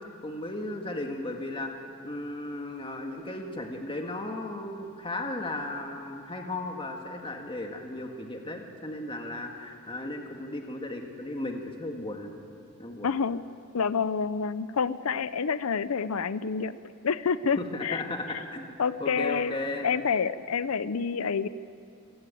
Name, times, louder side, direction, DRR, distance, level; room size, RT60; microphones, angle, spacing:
voice 1, 0.2-1.7 2.0-12.3 12.8-13.1 17.6-18.6 19.0-19.9, left 2 dB, 25° left, 3 dB, 1.8 m, -35 dB
voice 2, 13.0-13.4 13.7-18.0 18.3-18.4 18.8-19.5 19.8-21.5, left 5 dB, 85° left, 15 dB, 0.6 m, -28 dB
26.5 x 17.0 x 9.1 m, 2.5 s
head